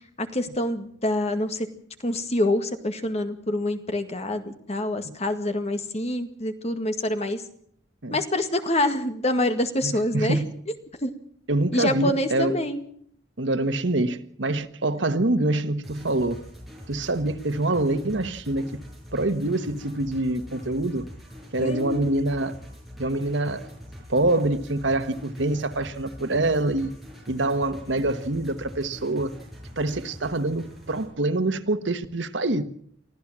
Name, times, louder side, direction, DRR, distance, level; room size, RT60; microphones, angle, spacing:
voice 1, 0.2-1.7 2.0-7.4 8.1-10.4 11.0-11.1 11.7-12.9 21.6-22.1, left 1 dB, 35° left, 1.9 m, -26 dB
voice 2, 9.8-10.5 11.5-12.6 13.4-16.4 16.9-18.8 19.1-21.1 21.5-22.6 23.0-23.7 24.1-26.9 27.3-29.3 29.8-32.6, right 2 dB, 85° right, 1.4 m, -25 dB
sound 1, 15.8-31.1, equal, ahead, 6.7 m, -43 dB
24.0 x 14.5 x 7.5 m
head